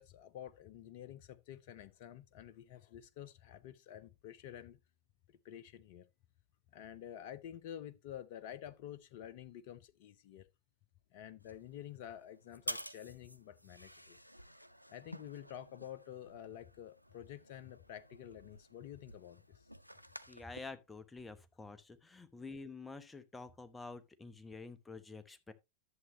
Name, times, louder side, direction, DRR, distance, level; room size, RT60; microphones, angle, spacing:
voice 1, 0.0-4.8 5.3-6.1 6.7-10.5 11.1-14.2 14.9-19.7, left 10 dB, 50° left, 0.6 m, -50 dB
sound 1, 11.4-20.6, equal, 90° left, 0.4 m, -51 dB
voice 2, 20.3-25.5, left 3 dB, 10° left, 0.9 m, -49 dB
11.0 x 7.3 x 2.9 m
figure-of-eight pair, 90°, 0 cm